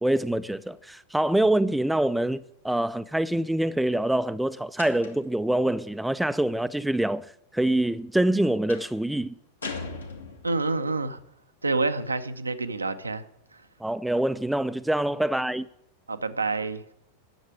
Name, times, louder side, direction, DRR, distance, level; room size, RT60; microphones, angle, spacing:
voice 1, 0.0-7.3 7.5-9.3 13.8-15.7, right 1 dB, 5° right, 0.4 m, -25 dB
sound 1, 4.8-5.4 8.7-9.0 9.6-10.7, left 4 dB, 75° left, 1.8 m, -38 dB
voice 2, 10.4-11.2 11.6-13.2 13.5-13.6 16.1-16.8, right 3 dB, 80° right, 0.7 m, -28 dB
10.5 x 7.3 x 8.1 m
figure-of-eight pair, 90°, 0 cm